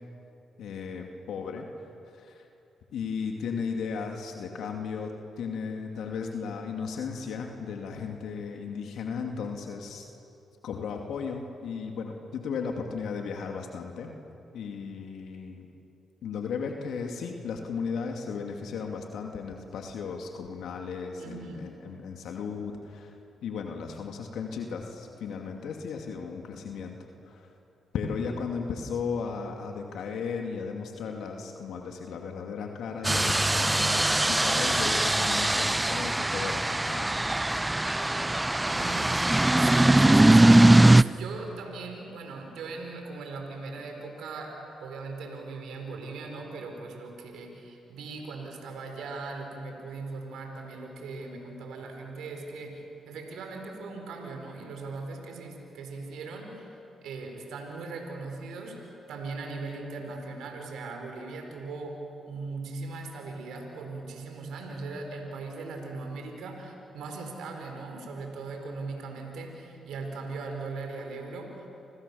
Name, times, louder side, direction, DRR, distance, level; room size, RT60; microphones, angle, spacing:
voice 1, 0.6-1.7 2.1-2.4 2.9-10.1 10.6-14.2 14.5-15.7 16.2-23.1 23.4-27.0 27.2-27.5 27.9-37.5, left 5 dB, 75° left, 2 dB, 2.5 m, -35 dB
voice 2, 21.2-21.7 38.7-44.5 44.8-56.8 57.0-62.0 62.3-71.6, right 3 dB, 75° right, 3 dB, 4.6 m, -39 dB
sound 1, 33.0-41.0, right 1 dB, 15° right, 0.6 m, -21 dB
29.5 x 27.5 x 7.1 m, 2.8 s
hypercardioid pair, 50°, 0 cm